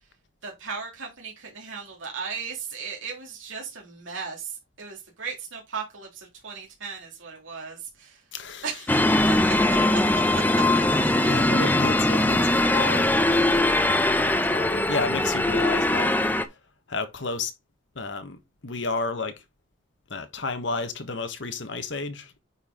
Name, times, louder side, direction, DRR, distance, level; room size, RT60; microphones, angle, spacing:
voice 1, 0.4-8.2 8.6-9.2 9.9-10.0 10.3-10.6, right 5 dB, 80° right, 2.3 m, -36 dB
voice 2, 8.3-8.7 11.2-13.2 14.1-16.1 16.9-17.5 17.9-19.4 20.1-22.4, left 3 dB, 65° left, 1.3 m, -31 dB
sound 1, 8.9-16.4, left 1 dB, 10° left, 0.6 m, -21 dB
9.5 x 4.5 x 3.7 m
head